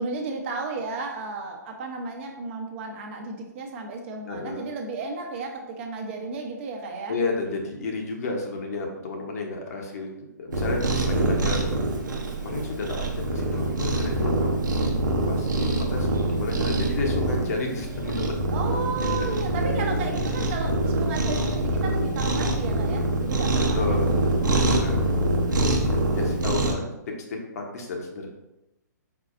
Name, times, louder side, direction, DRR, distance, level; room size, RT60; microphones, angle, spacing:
voice 1, 0.0-7.1 18.5-24.0, right 3 dB, 40° right, 2 dB, 0.9 m, -33 dB
voice 2, 4.2-4.6 7.1-10.1 10.4-11.8 12.3-14.6 15.3-18.3 19.0-19.3 19.7-20.2 23.7-28.3, left 3 dB, 55° left, 1 dB, 1.1 m, -32 dB
Cat, 10.5-26.7, right 1 dB, 85° right, 0.9 m, -25 dB
4.6 x 4.1 x 2.6 m, 0.92 s
hypercardioid pair, 140°, 10 cm